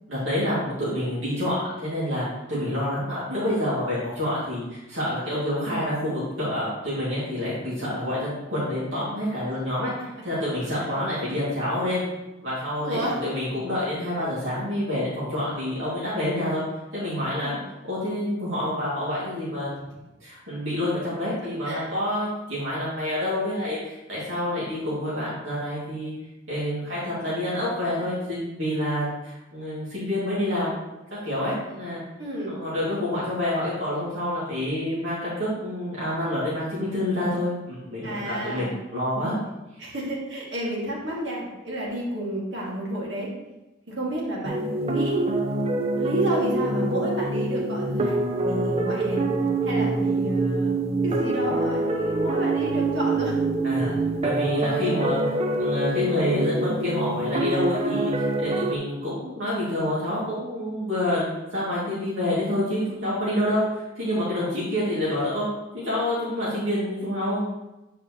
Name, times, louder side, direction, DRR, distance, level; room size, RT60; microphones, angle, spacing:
voice 1, 0.1-12.0 12.4-16.6 16.9-17.6 17.8-19.7 20.2-26.1 26.5-30.8 31.2-32.0 32.4-39.4 53.6-53.9 54.2-55.3 55.6-65.5 65.7-67.4, left 1 dB, 85° right, -9 dB, 2.3 m, -27 dB
voice 2, 12.8-13.2 17.4-17.6 21.7-21.8 26.8-27.0 32.2-32.6 38.0-38.7 39.8-43.3 43.9-45.2 45.9-48.2 48.5-49.2 49.6-50.8 51.0-53.4, right 1 dB, 65° right, -4 dB, 2.0 m, -31 dB
sound 1, 44.4-58.8, right 2 dB, 30° right, 0.5 m, -25 dB
7.9 x 5.0 x 3.0 m, 0.99 s
head